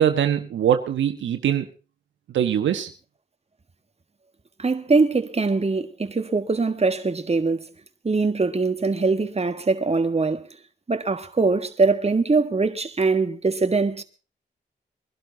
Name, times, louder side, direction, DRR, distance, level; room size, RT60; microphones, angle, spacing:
voice 1, 0.0-1.7 2.3-2.9, right 9 dB, 85° right, 1.4 m, -22 dB
voice 2, 4.6-7.7 8.0-10.5 10.9-14.0, right 3 dB, 35° right, 1.7 m, -22 dB
22.0 x 12.0 x 4.0 m
supercardioid pair, 45°, 19 cm